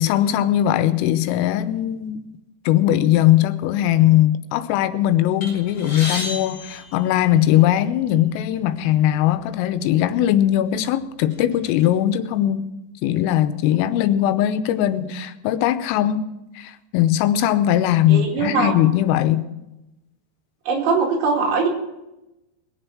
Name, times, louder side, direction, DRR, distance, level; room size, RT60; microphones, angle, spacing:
voice 1, 0.0-2.2 2.7-12.7 13.0-16.2 16.6-19.5, left 12 dB, 85° left, 3.4 m, -19 dB
sound 1, 5.4-7.7 8.6-8.7 9.0-9.2 10.1-10.2 10.7-11.9, left 2 dB, 30° left, 3.8 m, -33 dB
voice 2, 18.1-18.7 20.7-21.7, right 4 dB, 65° right, 4.3 m, -21 dB
21.5 x 8.0 x 6.1 m
omnidirectional pair, 5.9 m